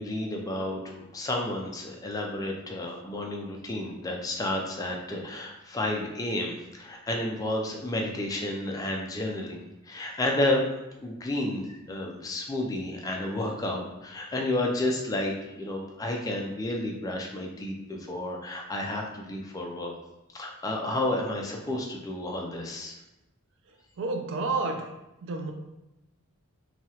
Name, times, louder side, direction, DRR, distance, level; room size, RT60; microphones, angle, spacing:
voice 1, 0.0-10.6 11.0-19.9 20.3-23.0, left 1 dB, 15° left, 0 dB, 0.3 m, -31 dB
voice 2, 24.0-24.9 25.2-25.5, right 3 dB, 55° right, 5 dB, 0.4 m, -30 dB
3.0 x 2.3 x 2.8 m, 0.95 s
head